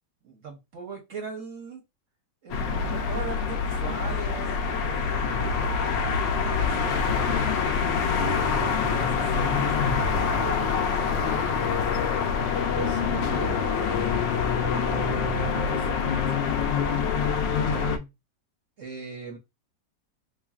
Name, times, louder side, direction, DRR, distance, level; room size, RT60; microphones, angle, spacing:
voice 1, 0.2-1.8 2.4-7.2 7.7-7.8 8.1-11.3 12.7-14.4 14.7-16.4 17.6-17.9 18.8-19.4, right 5 dB, 55° right, 1.0 m, -40 dB
sound 1, 2.5-18.0, left 5 dB, 90° left, 1.3 m, -25 dB
voice 2, 11.0-11.8 17.3-18.1, left 7 dB, 70° left, 0.9 m, -39 dB
3.8 x 3.1 x 2.3 m
omnidirectional pair, 1.9 m